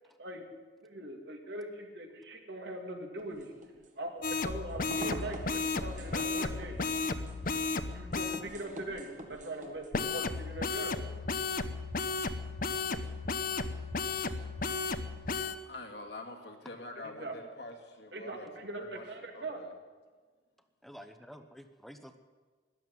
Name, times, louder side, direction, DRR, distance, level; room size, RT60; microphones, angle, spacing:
voice 1, 0.8-3.5 4.0-6.8 7.9-11.0 17.0-17.3 18.1-19.6, right 1 dB, 75° right, 3 dB, 2.4 m, -41 dB
sound 1, 3.2-9.9, right 1 dB, 45° right, 1.8 m, -46 dB
sound 2, 4.2-8.4 9.9-15.6, left 4 dB, 50° left, 0.8 m, -34 dB
voice 2, 15.7-18.5 18.8-19.0 19.3-19.7, left 2 dB, 70° left, 2 dB, 2.2 m, -45 dB
voice 3, 20.8-22.2, equal, ahead, 8 dB, 0.8 m, -50 dB
13.5 x 11.5 x 9.4 m, 1.5 s
head